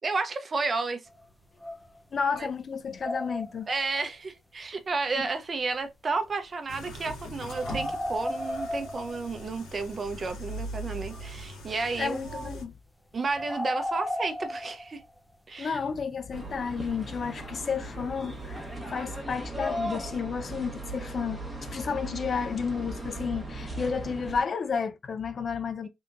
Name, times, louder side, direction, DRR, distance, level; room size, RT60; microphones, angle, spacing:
voice 1, 0.0-1.0 2.4-2.5 3.7-12.6 13.1-15.0 15.5-15.8, right 4 dB, 35° right, 0.7 m, -32 dB
sound 1, 1.1-1.2 1.6-2.5 2.8-3.9 7.5-9.5 10.2-10.3 10.6-10.7 11.1-11.4 12.3-12.7 13.3-15.3 17.6-17.7 18.4-18.5, left 1 dB, 5° left, 0.7 m, -34 dB
voice 2, 2.1-3.7 12.0-12.8 15.6-25.9, left 6 dB, 45° left, 0.5 m, -32 dB
sound 2, 6.7-12.6, equal, 80° left, 1.8 m, -41 dB
sound 3, 16.3-24.4, right 1 dB, 10° right, 1.3 m, -37 dB
3.6 x 2.8 x 2.5 m
cardioid pair, 90°, 0 cm